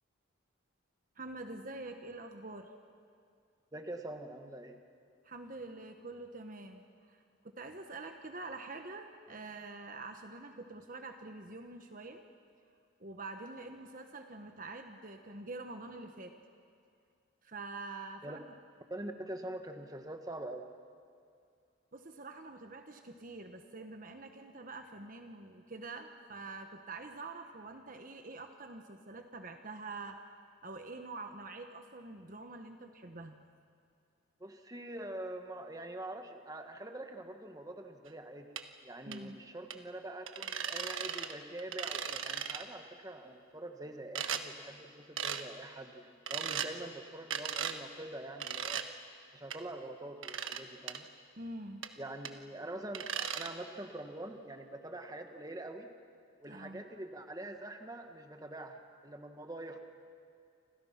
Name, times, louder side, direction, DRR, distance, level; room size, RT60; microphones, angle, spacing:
voice 1, 1.2-2.7 5.2-12.2 13.0-16.3 17.4-18.4 21.9-30.2 30.6-33.4 39.1-39.4 51.4-51.8 56.4-56.8, right 3 dB, 40° right, 6 dB, 1.2 m, -46 dB
voice 2, 3.7-4.8 18.2-18.4 18.9-20.7 34.4-38.5 38.8-48.8 49.3-51.1 52.0-55.9 56.4-59.8, right 1 dB, 20° right, 5 dB, 1.5 m, -44 dB
sound 1, 38.6-38.7 39.1-39.2 39.7-39.8 40.3-41.3 41.6-42.6 44.1-44.4 45.2-45.4 46.3-46.7 47.3-47.8 48.4-48.9 49.5-49.6 50.2-50.6 50.9-51.0 51.8-51.9 52.2-52.3 52.9-53.5, right 8 dB, 80° right, 1.3 m, -37 dB
29.5 x 26.0 x 5.9 m, 2.4 s
head